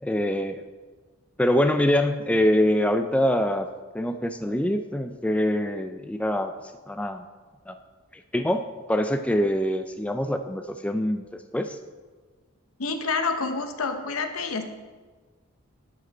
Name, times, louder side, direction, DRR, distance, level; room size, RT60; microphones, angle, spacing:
voice 1, 0.0-0.6 1.4-3.7 3.9-6.5 6.9-7.2 7.7-7.8 8.1-11.8, left 1 dB, 5° left, 7 dB, 0.3 m, -24 dB
voice 2, 12.8-14.6, left 4 dB, 85° left, 7 dB, 0.9 m, -28 dB
12.0 x 5.1 x 5.2 m, 1.4 s
head